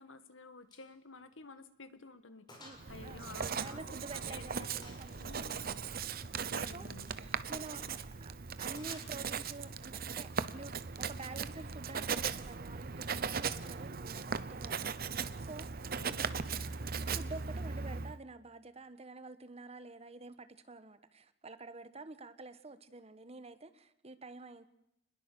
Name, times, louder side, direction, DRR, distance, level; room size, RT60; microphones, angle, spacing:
voice 1, 0.0-4.9 5.2-5.8 6.5-7.1 16.0-16.6, left 3 dB, 85° left, 11 dB, 1.8 m, -52 dB
Gunshot gunfire, 0.7-0.9 1.2-1.4 1.8-1.9 2.5-2.9 3.2-4.1 4.8-5.3 7.0-7.3 8.7-9.5, left 1 dB, 25° left, 6.9 m, -55 dB
voice 2, 2.6-5.5 6.7-15.8 16.1-16.2 17.1-24.7, right 3 dB, 35° right, 11 dB, 1.2 m, -49 dB
Writing, 2.8-18.2, right 6 dB, 50° right, 0.9 m, -38 dB
28.0 x 21.0 x 6.9 m, 0.78 s
head